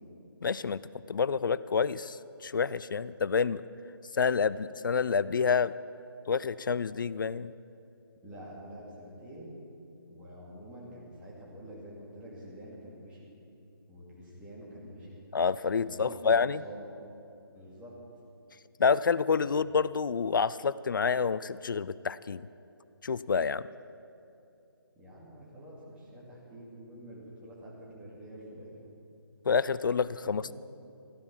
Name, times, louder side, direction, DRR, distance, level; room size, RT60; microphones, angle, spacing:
voice 1, 0.4-0.8 1.1-3.6 4.1-5.7 6.3-7.5 15.3-16.6 18.8-22.4 23.0-23.7 29.5-30.5, left 5 dB, 55° left, 18 dB, 0.4 m, -28 dB
voice 2, 8.2-9.5 10.1-13.3 13.9-15.2 15.8-16.8 17.5-17.9 19.4-19.6 25.0-28.7 30.4-30.5, equal, 10° right, -6 dB, 2.3 m, -47 dB
14.5 x 12.5 x 6.0 m, 2.7 s
figure-of-eight pair, 160°, 13 cm